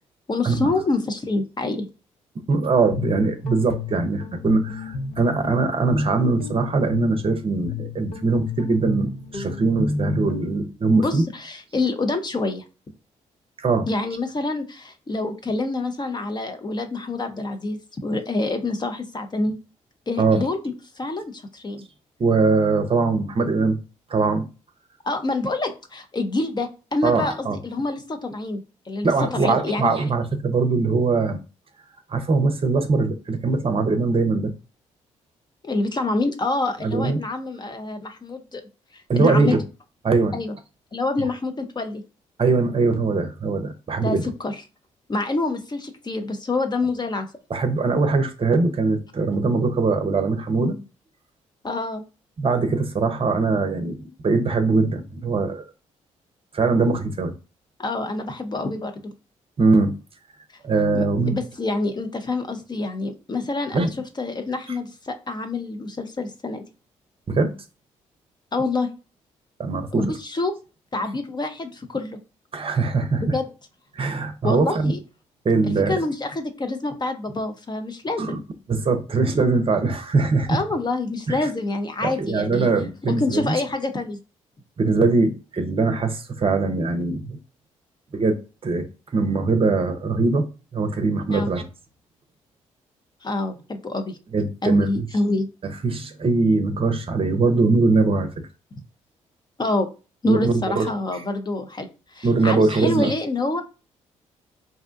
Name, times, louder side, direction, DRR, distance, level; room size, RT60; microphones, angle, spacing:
voice 1, 0.3-1.9 10.9-12.6 13.9-19.5 20.1-21.8 25.0-29.9 35.6-38.6 38.9-39.5 40.3-40.5 40.9-42.0 44.0-44.6 45.1-47.3 51.6-52.0 57.8-59.1 60.9-63.9 64.2-66.6 68.5-68.9 69.9-70.5 70.9-72.2 73.2-73.5 74.4-75.0 75.6-78.4 80.5-82.7 83.1-84.2 91.3-91.5 93.2-94.2 94.6-95.5 99.6-99.9 100.2-103.6, left 2 dB, 25° left, 0.7 m, -27 dB
voice 2, 2.5-11.3 13.6-13.9 20.2-20.4 22.2-23.8 24.1-24.5 27.0-27.6 29.0-31.4 32.1-34.5 36.8-37.2 39.1-39.6 40.0-40.4 42.4-44.3 47.5-50.8 52.4-54.0 54.2-55.6 56.5-57.3 59.6-59.9 60.6-61.4 63.7-63.9 67.3-67.5 69.6-70.0 72.5-73.4 73.9-74.9 75.4-76.0 78.2-78.4 78.7-80.6 81.3-81.5 82.0-83.6 84.8-87.4 88.1-88.4 88.6-88.8 89.1-91.6 94.3-95.1 95.6-98.3 100.3-101.2 102.2-103.1, right 3 dB, 35° right, 0.7 m, -21 dB
Guitar, 2.6-10.6, left 3 dB, 60° left, 0.8 m, -32 dB
2.6 x 2.1 x 2.5 m
figure-of-eight pair, 40°, 16 cm